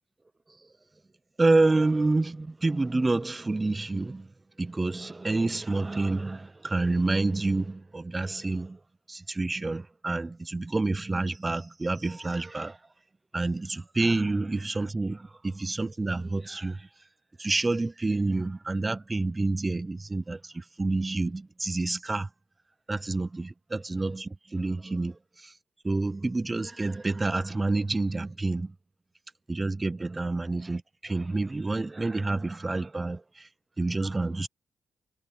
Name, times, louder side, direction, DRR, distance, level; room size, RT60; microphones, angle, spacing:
voice 1, 1.4-4.3 4.6-8.8 9.1-12.8 13.3-16.9 17.4-22.3 22.9-25.5 25.8-28.8 29.5-33.5 33.8-34.5, right 2 dB, 20° right, 0.5 m, -28 dB
cardioid pair, 95°, 0 cm